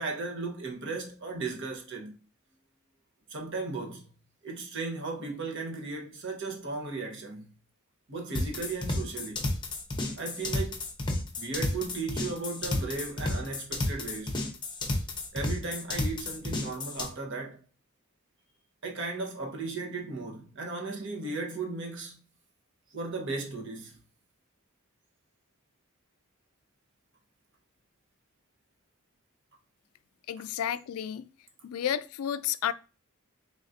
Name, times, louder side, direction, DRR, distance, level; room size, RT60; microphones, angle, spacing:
voice 1, 0.0-2.1 3.3-4.1 4.4-7.5 8.1-9.4 10.2-10.8 11.4-14.4 15.3-17.6 18.8-22.2 22.9-24.0, right 3 dB, 55° right, 1.0 m, -36 dB
sound 1, 8.3-17.1, left 2 dB, 20° left, 0.7 m, -31 dB
voice 2, 30.3-31.2 31.6-32.7, left 10 dB, 75° left, 0.3 m, -31 dB
4.0 x 3.8 x 2.5 m
head